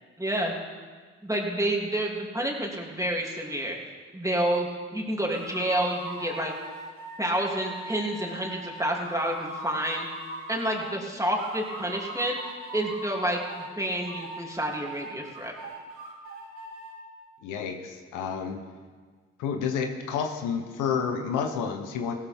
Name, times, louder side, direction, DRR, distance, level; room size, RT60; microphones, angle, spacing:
voice 1, 0.2-0.5 1.2-3.8 4.1-6.5 7.2-10.0 10.5-12.4 12.7-15.5, right 1 dB, 10° right, -1 dB, 3.0 m, -29 dB
sound 1, 5.3-11.0 11.4-13.7 14.0-16.9, right 1 dB, 85° right, 3.9 m, -40 dB
voice 2, 17.4-18.6 19.4-22.1, left 6 dB, 85° left, 5 dB, 1.1 m, -30 dB
16.0 x 12.5 x 3.6 m, 1.5 s
supercardioid pair, 50°, 30 cm